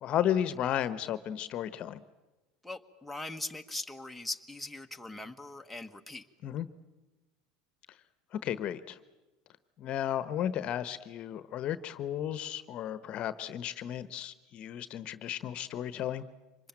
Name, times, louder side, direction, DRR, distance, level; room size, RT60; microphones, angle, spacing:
voice 1, 0.0-2.0 6.4-6.7 8.3-9.0 9.8-16.2, left 10 dB, 50° left, 14 dB, 1.1 m, -33 dB
voice 2, 2.6-6.3, left 2 dB, 5° left, 4 dB, 1.3 m, -40 dB
25.0 x 21.0 x 9.0 m, 1.1 s
hypercardioid pair, 95°, 2 cm